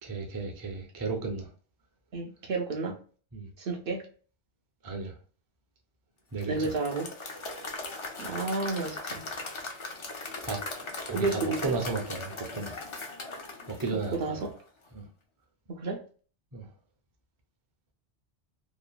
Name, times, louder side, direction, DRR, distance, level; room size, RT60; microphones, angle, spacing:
voice 1, 0.0-1.5 3.3-3.5 4.8-5.2 6.3-6.7 10.4-10.6 11.1-12.9 13.7-14.5 14.9-15.0 16.5-16.7, right 3 dB, 30° right, 0.4 m, -34 dB
voice 2, 2.1-3.0 3.6-4.1 6.4-7.1 8.2-9.2 11.1-11.6 14.2-14.5 15.7-16.0, right 3 dB, 65° right, 0.7 m, -31 dB
Applause / Crowd, 6.4-14.6, left 3 dB, 45° left, 0.4 m, -39 dB
2.9 x 2.2 x 2.3 m
omnidirectional pair, 1.1 m